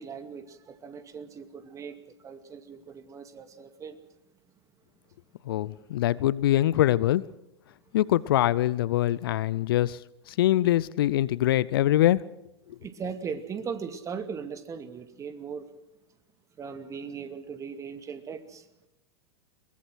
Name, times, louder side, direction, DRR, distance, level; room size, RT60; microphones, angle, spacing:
voice 1, 0.0-4.0 12.8-15.7 16.6-18.7, right 6 dB, 25° right, 9 dB, 2.3 m, -38 dB
voice 2, 5.5-7.2 7.9-10.0 10.3-12.2 12.7-12.8, left 14 dB, 60° left, 21 dB, 0.7 m, -23 dB
22.5 x 21.0 x 6.3 m, 0.89 s
figure-of-eight pair, 95°, 14 cm